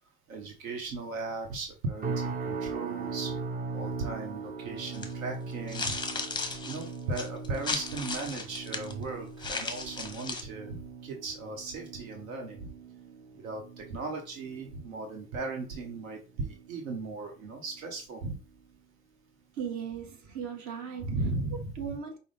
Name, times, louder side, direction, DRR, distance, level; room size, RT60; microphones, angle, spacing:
voice 1, 0.3-3.3 3.7-6.0 6.7-12.7 13.3-18.4 21.0-21.8, right 3 dB, 75° right, 1.1 m, -37 dB
sound 1, 2.0-17.2 17.6-18.0 18.5-18.7, right 4 dB, 20° right, 0.5 m, -40 dB
sound 2, 4.9-5.1 5.7-8.9 9.4-10.4, left 4 dB, 10° left, 0.8 m, -35 dB
voice 2, 19.5-21.1 21.7-22.2, right 7 dB, 45° right, 1.2 m, -37 dB
5.1 x 2.3 x 3.3 m
hypercardioid pair, 80°, 41 cm